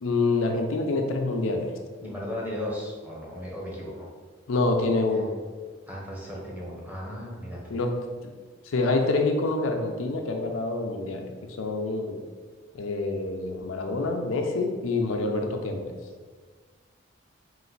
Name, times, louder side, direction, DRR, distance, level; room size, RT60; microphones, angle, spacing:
voice 1, 0.0-1.7 4.5-5.3 7.7-7.9 8.7-12.2 12.7-15.9, left 3 dB, 90° left, 3 dB, 0.5 m, -26 dB
voice 2, 2.0-4.1 5.9-7.8, left 1 dB, 10° right, -5 dB, 0.8 m, -36 dB
4.0 x 2.5 x 3.9 m, 1.5 s
head